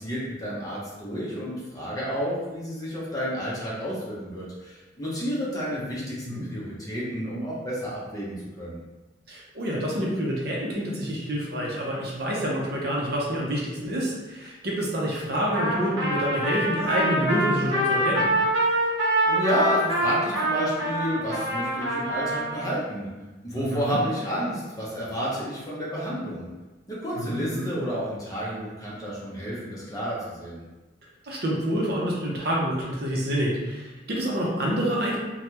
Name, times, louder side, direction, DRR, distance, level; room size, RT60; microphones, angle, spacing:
voice 1, 0.0-6.2 6.4-8.8 19.3-23.1 23.4-26.5 26.9-30.6, equal, 20° left, -6 dB, 0.7 m, -30 dB
voice 2, 9.3-18.3 23.7-24.0 27.2-27.7 31.2-35.2, equal, 55° right, -3 dB, 0.7 m, -27 dB
Trumpet, 15.5-22.6, right 1 dB, 80° right, 0.9 m, -25 dB
3.3 x 2.2 x 2.9 m, 1.1 s
head